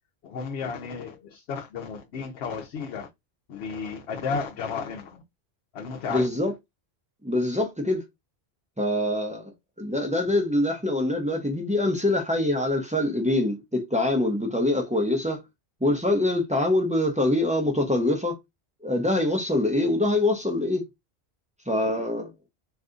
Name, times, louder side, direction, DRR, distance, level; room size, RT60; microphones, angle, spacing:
voice 1, 0.2-3.1 3.5-5.2 5.7-6.3 21.9-22.1, left 5 dB, 75° left, 0.9 m, -33 dB
voice 2, 6.1-6.5 7.2-8.0 8.8-9.5 9.8-15.4 15.8-18.4 18.8-20.8 21.7-22.3, left 1 dB, 10° right, 0.4 m, -24 dB
2.7 x 2.4 x 3.6 m
omnidirectional pair, 1.1 m